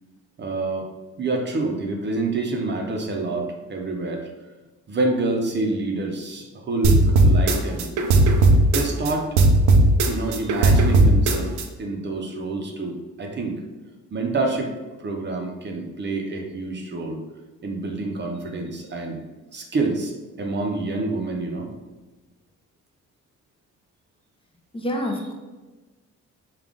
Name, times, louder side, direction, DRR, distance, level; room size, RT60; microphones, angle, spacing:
voice 1, 0.4-0.9 1.2-4.3 4.9-7.9 8.6-9.3 10.1-13.6 14.1-14.7 15.0-17.2 17.6-19.2 19.5-20.1 20.4-21.7, right 3 dB, 35° right, 1 dB, 0.7 m, -27 dB
sound 1, 6.8-9.1 9.4-11.6, right 2 dB, 85° right, 0.5 m, -16 dB
voice 2, 24.7-25.3, equal, 20° left, 1 dB, 0.6 m, -27 dB
3.5 x 2.5 x 3.7 m, 1.2 s
cardioid pair, 90°, 30 cm